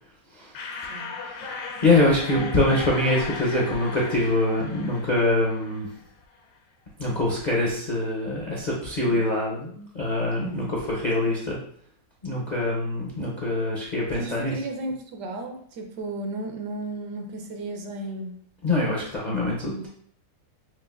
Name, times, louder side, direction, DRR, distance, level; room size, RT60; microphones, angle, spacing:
sound 1, 0.6-6.1, left 4 dB, 75° left, 1.2 m, -37 dB
voice 1, 0.8-1.5 1.8-5.9 7.0-11.6 12.2-14.5 18.6-19.7, left 2 dB, 55° left, -4 dB, 0.4 m, -24 dB
voice 2, 10.4-10.7 14.2-18.4 19.6-19.9, right 2 dB, 75° right, 3 dB, 1.2 m, -34 dB
6.0 x 2.5 x 2.4 m, 0.63 s
omnidirectional pair, 1.9 m